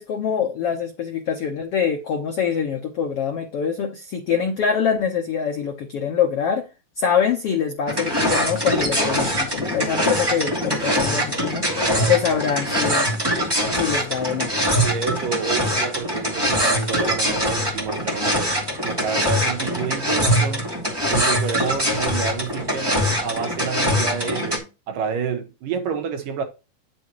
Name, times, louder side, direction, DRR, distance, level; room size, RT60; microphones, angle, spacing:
voice 1, 0.0-6.7 7.0-11.7 12.1-13.1 13.8-14.5, left 7 dB, 75° left, 1.3 m, -24 dB
sound 1, 7.9-24.6, equal, 10° right, 1.5 m, -23 dB
voice 2, 11.8-12.2 14.8-18.5 18.8-20.7 21.1-26.4, right 6 dB, 70° right, 2.7 m, -29 dB
9.5 x 6.9 x 3.0 m
omnidirectional pair, 4.1 m